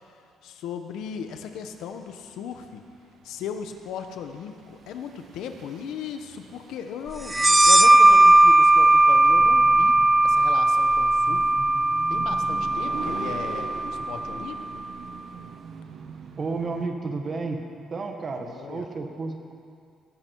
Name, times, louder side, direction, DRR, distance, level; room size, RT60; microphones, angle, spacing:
voice 1, 0.0-2.8 3.2-11.6 12.1-14.7 18.4-18.8, left 7 dB, 80° left, 6 dB, 1.1 m, -37 dB
sound 1, 1.0-16.9, right 6 dB, 55° right, 1.1 m, -43 dB
sound 2, 7.3-14.6, right 2 dB, 10° right, 0.3 m, -18 dB
voice 2, 16.4-17.6 17.9-19.5, right 3 dB, 35° right, 4 dB, 1.6 m, -31 dB
21.0 x 12.0 x 4.7 m, 2.4 s
cardioid pair, 130°, 0 cm